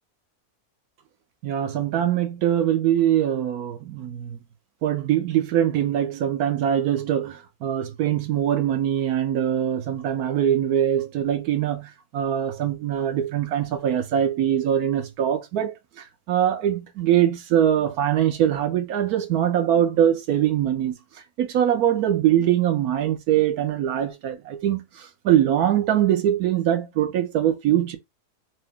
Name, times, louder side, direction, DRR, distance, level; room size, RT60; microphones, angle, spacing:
voice 1, 1.4-4.4 4.8-20.9 21.4-28.0, right 10 dB, 75° right, 1.1 m, -22 dB
3.2 x 2.8 x 3.6 m
omnidirectional pair, 1.6 m